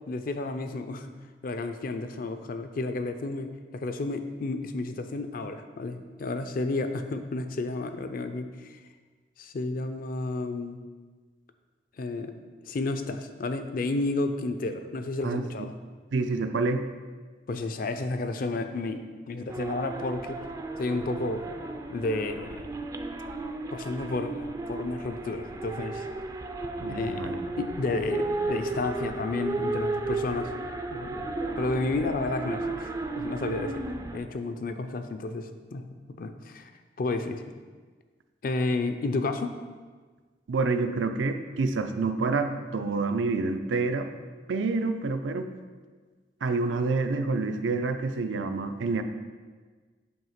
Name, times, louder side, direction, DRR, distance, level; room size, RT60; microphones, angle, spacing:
voice 1, 0.1-1.1 1.4-8.8 9.4-10.8 12.0-12.4 12.7-15.7 17.5-20.4 20.8-21.5 21.9-22.7 23.7-26.0 26.9-30.5 30.9-31.3 31.6-33.9 34.1-36.7 37.0-37.4 38.4-39.6, left 2 dB, 50° left, 8 dB, 0.4 m, -31 dB
voice 2, 16.1-16.8 26.8-27.4 40.5-44.1 44.5-45.5 46.4-49.0, right 3 dB, 90° right, 8 dB, 0.5 m, -27 dB
sound 1, 19.5-34.2, right 2 dB, 20° right, 0.3 m, -34 dB
7.8 x 2.8 x 5.7 m, 1.4 s
head